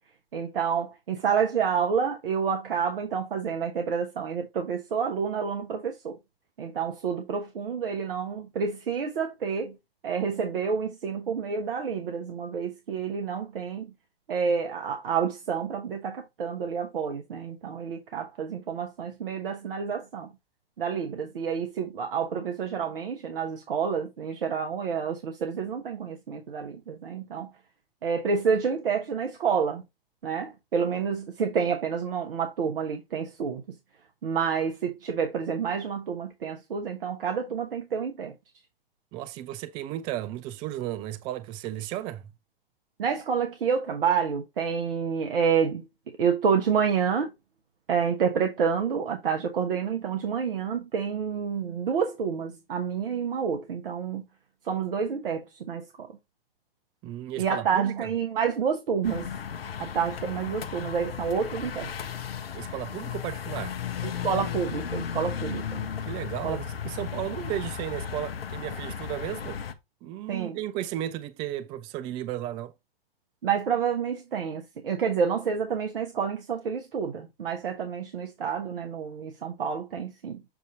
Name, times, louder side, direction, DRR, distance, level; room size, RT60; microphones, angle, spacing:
voice 1, 0.3-6.2 6.6-9.8 10.0-13.9 14.3-20.3 20.8-27.5 28.0-29.8 30.2-33.6 34.2-38.3 43.0-45.8 46.2-47.3 47.9-54.3 54.6-56.1 57.4-59.3 59.8-61.9 64.0-65.9 66.4-66.6 70.3-70.6 73.4-80.4, right 6 dB, 65° right, 1.2 m, -29 dB
voice 2, 39.1-42.2 57.0-58.1 62.5-63.8 66.0-69.6 70.0-72.7, right 13 dB, 20° right, 0.3 m, -34 dB
sound 1, 59.0-69.7, left 8 dB, 80° left, 0.9 m, -35 dB
7.5 x 2.7 x 5.2 m
figure-of-eight pair, 110°, 29 cm